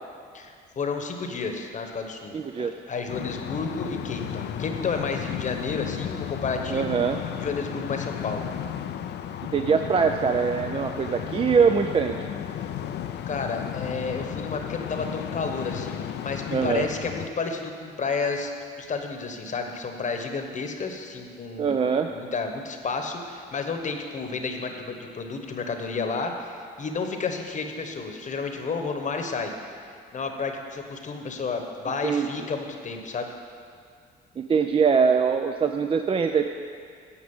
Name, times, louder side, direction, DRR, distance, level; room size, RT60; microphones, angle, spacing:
voice 1, 0.3-2.4 2.9-7.0 7.4-8.4 13.3-18.5 18.8-29.5 29.9-33.3, left 4 dB, 40° left, 5 dB, 1.1 m, -31 dB
voice 2, 2.3-2.7 6.7-7.2 9.5-12.2 16.5-16.9 21.6-22.1 32.0-32.3 34.4-36.5, right 6 dB, 30° right, 6 dB, 0.4 m, -23 dB
sound 1, 3.1-17.3, left 10 dB, 60° left, 0.5 m, -34 dB
10.0 x 5.0 x 7.1 m, 2.2 s
supercardioid pair, 80°, 20 cm